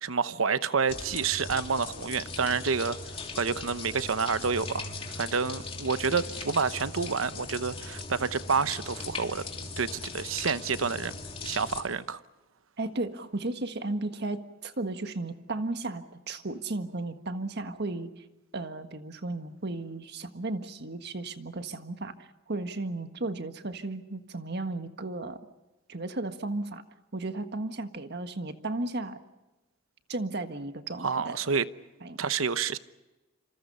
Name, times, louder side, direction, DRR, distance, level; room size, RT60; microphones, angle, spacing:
voice 1, 0.0-3.0 3.3-4.9 5.1-9.4 9.8-11.1 11.4-12.2 31.0-31.6 32.2-32.8, right 5 dB, 90° right, 0.9 m, -28 dB
sound 1, 0.9-11.8, left 3 dB, 30° left, 3.0 m, -39 dB
voice 2, 12.8-18.1 18.5-25.4 25.9-26.8 27.1-29.2 30.1-31.4 32.0-32.2, right 2 dB, 55° right, 1.6 m, -34 dB
27.5 x 27.0 x 5.6 m
head